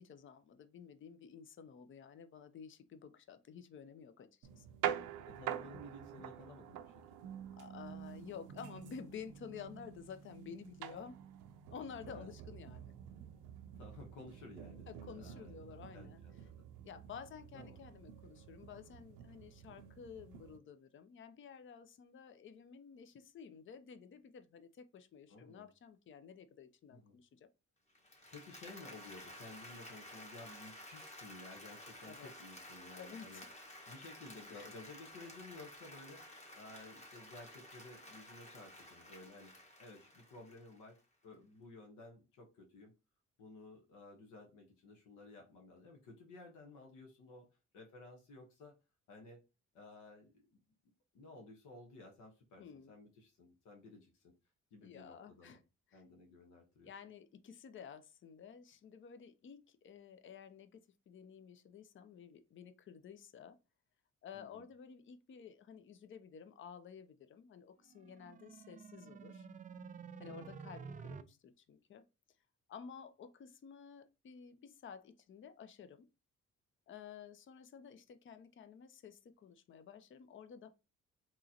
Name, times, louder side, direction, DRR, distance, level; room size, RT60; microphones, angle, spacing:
voice 1, 0.0-4.7 7.6-11.2 11.7-13.0 14.9-16.2 16.8-27.5 32.0-32.3 33.0-33.5 34.5-34.7 52.6-52.9 54.8-55.6 55.9-56.0 56.8-63.6 64.2-69.5 70.2-72.0 72.7-76.1 76.9-80.7, left 7 dB, 40° left, 0.6 m, -52 dB
sound 1, 4.4-20.6, right 10 dB, 90° right, 0.5 m, -47 dB
voice 2, 5.2-7.3 12.1-12.4 13.7-15.6 15.9-16.6 17.5-17.8 25.3-25.7 26.9-27.2 28.3-33.4 33.9-41.0 41.2-42.9 43.4-47.5 47.7-48.7 49.1-49.5 49.7-50.6 51.1-54.3 54.7-55.6 55.9-56.9 64.3-64.6 70.2-70.6, left 2 dB, 80° left, 1.1 m, -55 dB
Applause, 27.9-41.0, left 1 dB, 20° left, 1.6 m, -53 dB
sound 2, 67.9-71.2, right 6 dB, 30° right, 0.3 m, -50 dB
3.7 x 3.0 x 2.8 m
cardioid pair, 90°, 30 cm